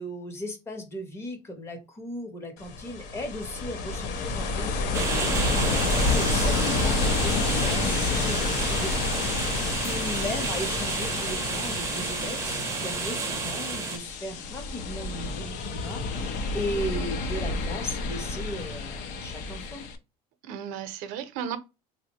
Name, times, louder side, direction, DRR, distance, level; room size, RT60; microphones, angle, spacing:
voice 1, 0.0-5.4 5.7-19.9, equal, 20° left, 0.7 m, -37 dB
Ocean, 2.6-20.0, left 3 dB, 65° left, 0.6 m, -29 dB
sound 1, 4.9-14.0, right 4 dB, 20° right, 0.5 m, -30 dB
voice 2, 20.4-21.6, right 8 dB, 70° right, 0.6 m, -35 dB
3.6 x 2.1 x 2.8 m
cardioid pair, 170°, 14 cm